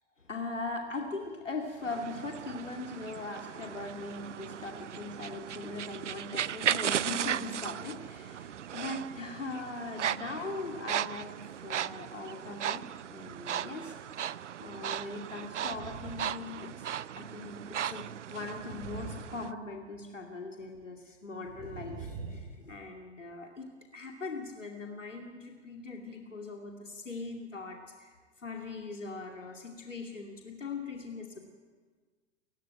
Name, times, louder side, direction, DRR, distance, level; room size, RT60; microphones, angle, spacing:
voice 1, 0.2-11.4 11.6-12.8 13.1-13.9 14.6-31.4, left 3 dB, 85° left, 2 dB, 2.6 m, -40 dB
sound 1, 1.8-19.5, right 9 dB, 70° right, 0.7 m, -37 dB
sound 2, 15.6-16.5 16.8-17.0 18.5-20.0 21.5-22.8, right 4 dB, 50° right, 3.2 m, -44 dB
28.5 x 16.0 x 9.0 m, 1.5 s
figure-of-eight pair, 100°, 37 cm